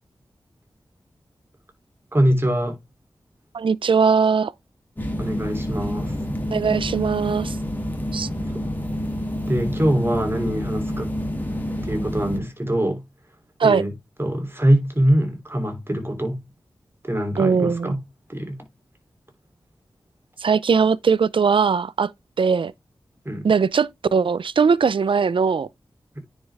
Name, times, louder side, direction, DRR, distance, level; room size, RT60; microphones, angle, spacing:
voice 1, 2.1-2.8 5.2-6.2 8.4-8.6 9.5-11.1 11.8-13.0 13.6-13.9 14.2-16.4 17.0-18.0 18.3-18.6 23.2-23.5, right 1 dB, 25° right, 3.1 m, -23 dB
voice 2, 3.5-4.5 6.5-7.6 8.1-8.3 13.6-13.8 17.4-17.9 20.4-22.1 22.4-22.7 23.4-25.7, right 5 dB, 70° right, 0.5 m, -20 dB
sound 1, 5.0-12.4, equal, 20° left, 2.7 m, -28 dB
9.6 x 5.4 x 3.4 m
wide cardioid pair, 65°, 9 cm